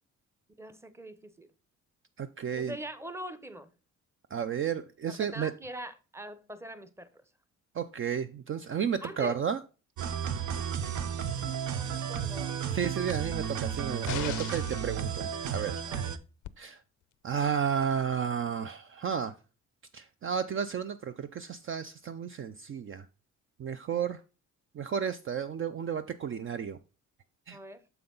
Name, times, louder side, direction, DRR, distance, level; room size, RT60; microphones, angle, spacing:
voice 1, 0.6-1.5 2.5-3.7 5.1-7.2 9.0-9.4 11.7-12.6 15.8-16.1 27.5-27.8, right 1 dB, 10° right, 0.8 m, -43 dB
voice 2, 2.2-2.8 4.3-5.5 7.7-9.6 12.7-15.8 16.6-16.8 17.2-19.3 19.9-23.1 23.6-24.2 24.7-26.8 27.5-27.6, right 7 dB, 45° right, 0.5 m, -32 dB
sound 1, 10.0-16.2, right 8 dB, 75° right, 0.8 m, -33 dB
sound 2, 14.1-14.9 16.4-16.5, left 15 dB, 80° left, 0.5 m, -37 dB
6.8 x 5.7 x 3.8 m
cardioid pair, 90°, 30 cm